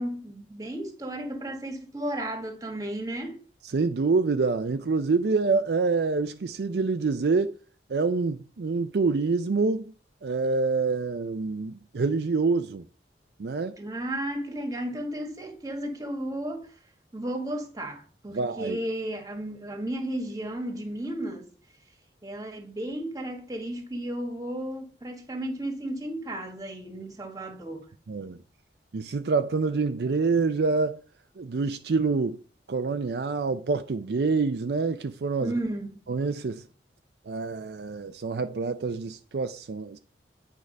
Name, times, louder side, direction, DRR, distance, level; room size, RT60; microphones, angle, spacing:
voice 1, 0.0-3.4 13.8-16.7 17.1-21.5 22.2-27.9 35.4-36.0, right 1 dB, 20° right, 1.5 m, -34 dB
voice 2, 3.7-7.5 7.9-9.9 10.2-12.8 13.4-13.8 18.3-18.8 28.1-28.4 28.9-31.0 31.4-32.4 32.7-35.5 36.1-36.6 37.3-40.0, right 4 dB, 65° right, 0.5 m, -26 dB
8.8 x 4.7 x 5.2 m
head